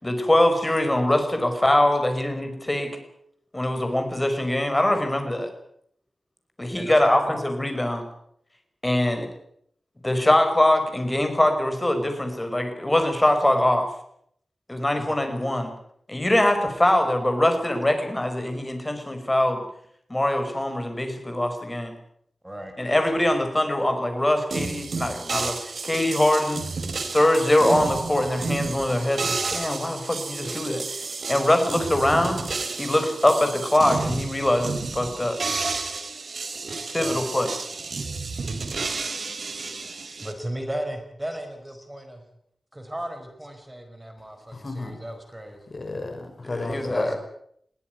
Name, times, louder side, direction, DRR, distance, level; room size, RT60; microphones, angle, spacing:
voice 1, 0.0-2.9 3.5-5.5 6.6-8.0 8.8-9.3 10.0-13.9 14.7-15.7 16.1-19.6 20.1-21.9 22.8-26.6 27.0-30.8 31.3-32.4 32.8-35.4 36.9-37.5 46.4-47.2, left 1 dB, 15° left, 6 dB, 5.5 m, -23 dB
voice 2, 6.8-7.3 14.9-15.2 22.4-22.7 37.0-37.3 40.2-42.2 42.7-45.6, right 1 dB, 15° right, 5 dB, 4.8 m, -35 dB
sound 1, 24.5-40.3, right 4 dB, 65° right, 3.8 m, -31 dB
voice 3, 44.5-45.0 45.7-47.2, left 2 dB, 45° left, 6 dB, 5.4 m, -32 dB
21.5 x 16.5 x 9.3 m, 0.69 s
wide cardioid pair, 105°, 0 cm